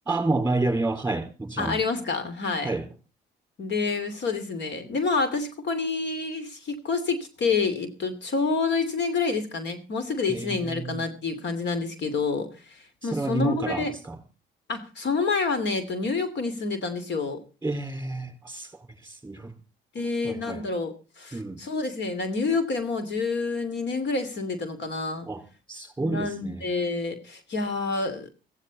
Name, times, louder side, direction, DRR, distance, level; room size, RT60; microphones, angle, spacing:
voice 1, 0.1-1.8 2.6-2.9 10.3-11.0 13.0-14.2 17.6-19.5 20.2-20.6 21.3-21.6 25.3-25.4 25.7-26.6, right 2 dB, 10° right, 4.7 m, -29 dB
voice 2, 1.6-2.7 3.6-13.9 14.7-17.4 19.9-25.3 26.0-28.3, left 4 dB, 60° left, 2.8 m, -28 dB
15.5 x 15.5 x 4.1 m
cardioid pair, 90°, 20 cm